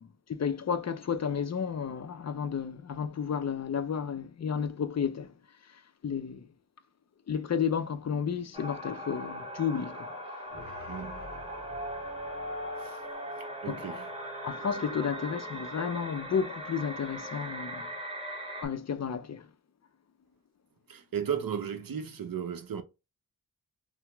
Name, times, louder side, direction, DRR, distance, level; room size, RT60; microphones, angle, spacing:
voice 1, 0.0-5.3 6.0-6.5 7.3-10.1 13.7-14.0 14.4-17.9 18.6-19.5, left 7 dB, 45° left, 0.4 m, -32 dB
sound 1, 8.5-18.7, equal, 15° right, 1.3 m, -40 dB
sound 2, 10.5-16.0, right 1 dB, 45° right, 1.0 m, -42 dB
voice 2, 10.9-11.3 12.8-13.0 13.6-14.0 20.9-22.8, right 8 dB, 65° right, 0.6 m, -35 dB
2.8 x 2.0 x 3.3 m
wide cardioid pair, 50°, 38 cm